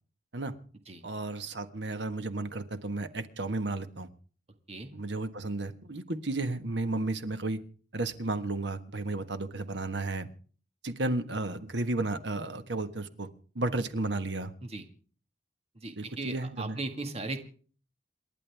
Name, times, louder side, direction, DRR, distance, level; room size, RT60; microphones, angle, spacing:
voice 1, 1.0-4.1 4.9-7.6 7.9-10.3 10.8-13.3 13.5-14.5 16.0-16.8, right 2 dB, 80° right, 10 dB, 1.5 m, -33 dB
voice 2, 15.8-17.4, right 2 dB, 35° right, 6 dB, 1.8 m, -37 dB
28.5 x 11.0 x 3.5 m, 0.41 s
head